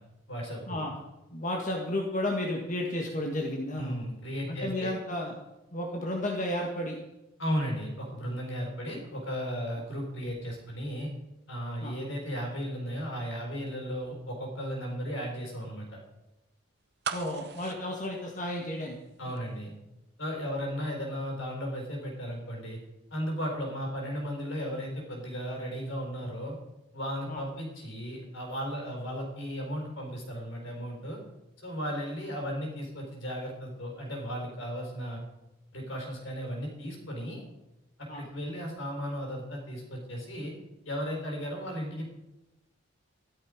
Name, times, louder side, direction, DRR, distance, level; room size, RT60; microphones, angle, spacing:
voice 1, 0.3-0.8 3.8-4.9 7.4-11.1 11.5-16.0 19.2-19.7 20.2-22.8 23.1-26.6 26.9-31.2 31.6-35.2 35.7-37.4 38.0-40.5 40.8-42.1, equal, 65° left, 1 dB, 4.5 m, -35 dB
voice 2, 1.3-4.0 4.5-5.3 5.7-7.0 11.8-11.9 17.1-19.0 27.3-27.4 38.1-38.3, left 1 dB, 35° left, 0 dB, 1.6 m, -32 dB
sound 1, 17.0-19.1 19.4-19.5, right 6 dB, 50° right, 0.8 m, -38 dB
14.0 x 12.0 x 5.1 m, 0.98 s
head